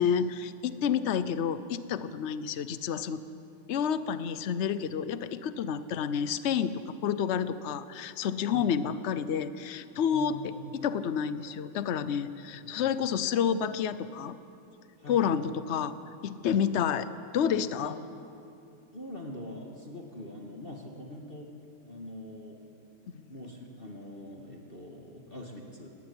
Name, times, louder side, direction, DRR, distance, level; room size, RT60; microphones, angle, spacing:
voice 1, 0.0-3.2 3.7-14.4 15.1-16.0 16.2-17.1 17.3-18.0 23.1-23.3, left 7 dB, 75° left, 13 dB, 0.6 m, -29 dB
voice 2, 10.1-10.6 12.5-12.7 15.0-15.3 17.7-17.9 18.9-21.5 21.8-22.6 23.3-25.9, left 1 dB, 30° left, 0 dB, 1.9 m, -43 dB
18.5 x 16.5 x 9.7 m, 2.7 s
omnidirectional pair, 2.1 m